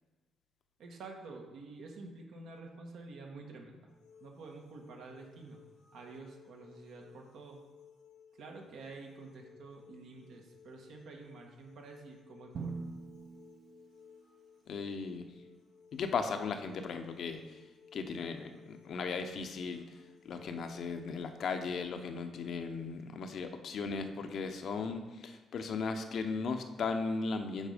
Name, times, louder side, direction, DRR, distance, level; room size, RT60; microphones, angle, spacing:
voice 1, 0.8-3.9 4.2-5.6 5.9-7.6 8.4-12.8, right 3 dB, 75° right, 1 dB, 1.3 m, -49 dB
sound 1, 3.9-21.5, left 7 dB, 90° left, 1.6 m, -60 dB
Drum, 12.5-14.6, right 4 dB, 55° right, 0.7 m, -44 dB
voice 2, 14.7-15.3 15.9-17.6 17.9-19.8 20.2-27.7, left 4 dB, 65° left, 7 dB, 0.7 m, -37 dB
7.3 x 4.3 x 5.0 m, 1.3 s
cardioid pair, 90°, 0 cm